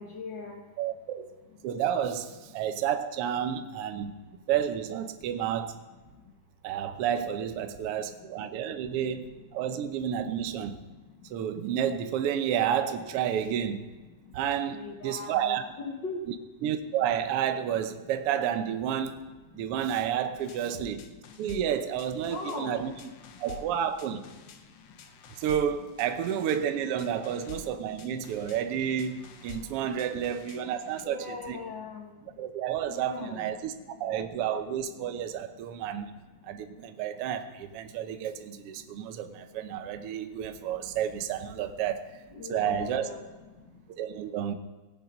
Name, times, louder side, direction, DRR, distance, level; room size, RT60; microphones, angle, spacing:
voice 1, 0.0-0.6 14.7-16.2 19.6-19.7 20.4-20.5 22.3-22.8 27.3-27.4 29.9-30.2 31.0-32.1 32.9-33.5 42.3-43.3, left 4 dB, 50° left, 2 dB, 1.5 m, -39 dB
voice 2, 0.8-1.3 1.6-5.8 6.6-10.8 11.3-13.9 14.3-15.6 16.6-19.2 19.5-21.0 21.4-22.9 23.4-24.2 25.4-31.6 32.4-33.7 34.0-36.1 36.4-42.1 42.5-43.1 43.9-44.5, right 9 dB, 70° right, 8 dB, 1.5 m, -30 dB
sound 1, 20.4-31.0, left 7 dB, 70° left, 1.3 m, -50 dB
18.5 x 7.2 x 5.3 m, 1.2 s
omnidirectional pair, 3.4 m